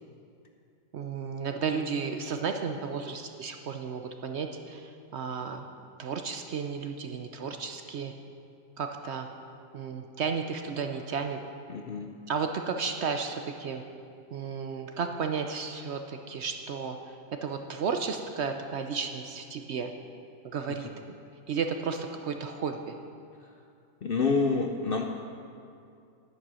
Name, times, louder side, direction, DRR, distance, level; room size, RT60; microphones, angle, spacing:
voice 1, 0.9-5.7 6.0-8.1 8.8-9.3 9.7-11.4 12.3-13.8 14.3-17.0 17.4-19.9 20.4-20.9 21.5-23.0, right 5 dB, 60° right, 6 dB, 0.8 m, -33 dB
voice 2, 11.7-12.1 24.0-25.1, left 4 dB, 55° left, 3 dB, 0.6 m, -27 dB
10.5 x 9.4 x 6.2 m, 2.5 s
omnidirectional pair, 1.5 m